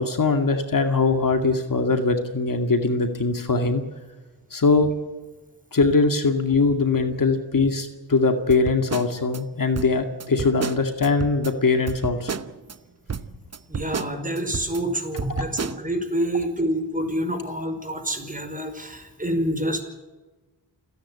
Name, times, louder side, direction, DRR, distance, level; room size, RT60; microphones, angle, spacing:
voice 1, 0.0-3.8 4.5-4.9 5.7-12.3 15.3-15.5, left 3 dB, 45° left, 6 dB, 2.3 m, -21 dB
sound 1, 8.5-9.4 9.7-11.5 11.9-12.8 13.1-14.8 15.2-15.8, right 5 dB, 35° right, 1.0 m, -32 dB
voice 2, 13.7-19.8, right 1 dB, 20° right, 7 dB, 5.0 m, -27 dB
28.5 x 10.5 x 8.7 m, 1.2 s
cardioid pair, 50°, 44 cm